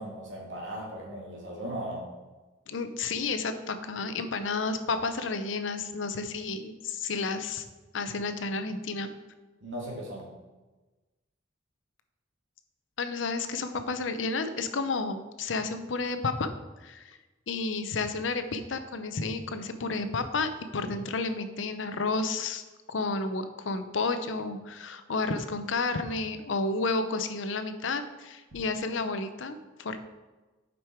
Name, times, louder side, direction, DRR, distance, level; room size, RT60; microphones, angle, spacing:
voice 1, 0.0-2.1 9.6-10.3, right 1 dB, 75° right, -2 dB, 2.3 m, -37 dB
voice 2, 2.7-7.6 7.9-9.1 13.0-16.5 16.8-17.2 17.5-22.6 22.9-30.0, left 3 dB, 80° left, 9 dB, 0.7 m, -31 dB
7.8 x 5.4 x 4.5 m, 1.2 s
head